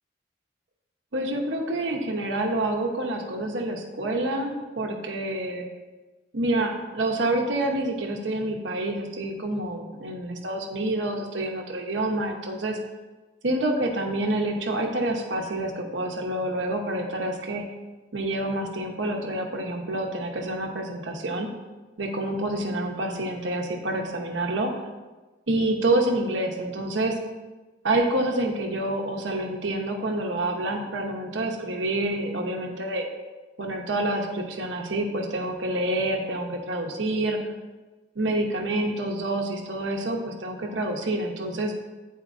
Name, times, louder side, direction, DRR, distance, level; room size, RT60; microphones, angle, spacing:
voice 1, 1.1-5.7 6.3-12.8 13.4-17.6 18.1-21.5 22.0-24.7 25.5-27.2 27.8-33.1 33.6-37.4 38.2-41.7, right 1 dB, 85° right, 2 dB, 0.9 m, -27 dB
9.3 x 4.4 x 2.5 m, 1.2 s
head